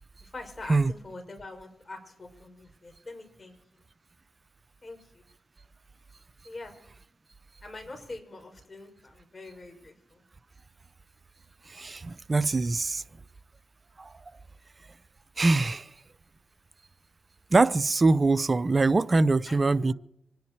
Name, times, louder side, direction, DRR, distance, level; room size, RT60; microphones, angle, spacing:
voice 1, 0.2-3.5 4.8-5.2 6.4-6.7 7.6-10.2 19.5-19.9, left 2 dB, 35° left, 5.9 m, -44 dB
voice 2, 11.7-13.0 14.0-14.1 15.4-15.9 17.5-19.9, right 3 dB, 40° right, 0.6 m, -23 dB
25.5 x 10.5 x 4.8 m
cardioid pair, 55°, 0 cm